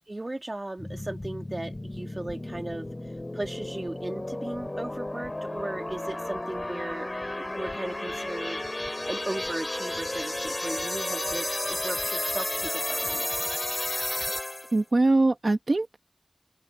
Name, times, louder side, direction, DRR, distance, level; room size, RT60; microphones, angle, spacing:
voice 1, 0.1-7.1 7.4-13.3, right 2 dB, 50° right, 2.2 m, -37 dB
sound 1, 0.8-14.8, left 1 dB, 40° left, 2.3 m, -32 dB
voice 2, 14.7-16.0, right 2 dB, 80° right, 1.1 m, -22 dB
open air
wide cardioid pair, 45°, 0 cm